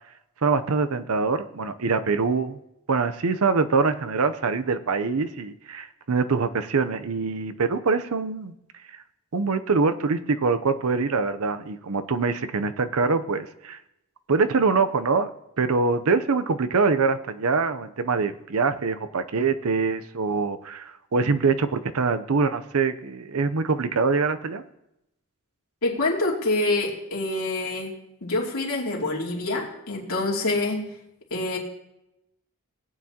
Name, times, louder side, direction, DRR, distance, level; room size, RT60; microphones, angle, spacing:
voice 1, 0.4-2.6 2.9-8.5 8.9-9.0 9.3-13.8 14.3-15.3 15.6-24.6, right 4 dB, 80° right, 11 dB, 0.7 m, -24 dB
voice 2, 25.8-27.9 28.2-30.9 31.3-31.6, left 2 dB, 80° left, -2 dB, 2.7 m, -26 dB
19.0 x 8.8 x 2.9 m, 0.85 s
head